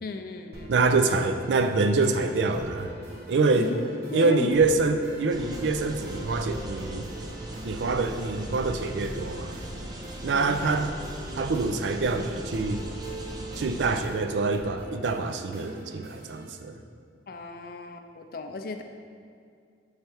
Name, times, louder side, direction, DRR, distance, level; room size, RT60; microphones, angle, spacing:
voice 1, 0.0-0.8 3.1-3.3 3.6-3.8 4.1-4.5 10.3-10.9 17.3-18.8, left 3 dB, 55° left, 6 dB, 0.4 m, -36 dB
sound 1, 0.5-16.5, right 1 dB, 65° right, 1.0 m, -42 dB
voice 2, 0.7-2.9 3.3-3.7 4.1-7.1 7.6-9.6 10.2-10.9 11.4-12.8 13.6-16.7, right 3 dB, 90° right, 7 dB, 0.4 m, -25 dB
sound 2, 5.3-14.1, right 1 dB, 25° right, 0.5 m, -39 dB
6.8 x 3.3 x 4.5 m, 2.3 s
head